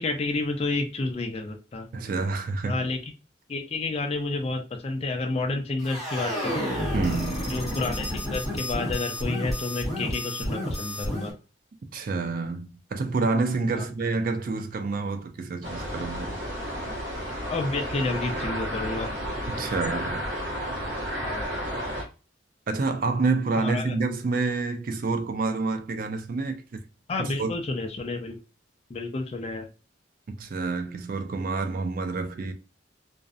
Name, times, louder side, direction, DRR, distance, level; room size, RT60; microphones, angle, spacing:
voice 1, 0.0-1.9 2.7-3.0 3.5-6.7 7.5-11.3 13.7-13.8 17.5-19.1 21.2-21.5 23.6-23.9 27.1-28.4 28.9-29.7, left 3 dB, 30° left, 0.3 m, -30 dB
voice 2, 1.9-2.8 6.9-7.5 11.9-16.4 19.5-20.2 22.7-26.6 27.2-27.5 30.3-32.5, right 3 dB, 45° right, 0.3 m, -28 dB
sound 1, 5.8-11.3, equal, ahead, 0.9 m, -30 dB
sound 2, 15.6-22.0, equal, 80° right, 1.0 m, -32 dB
2.6 x 2.0 x 2.4 m
head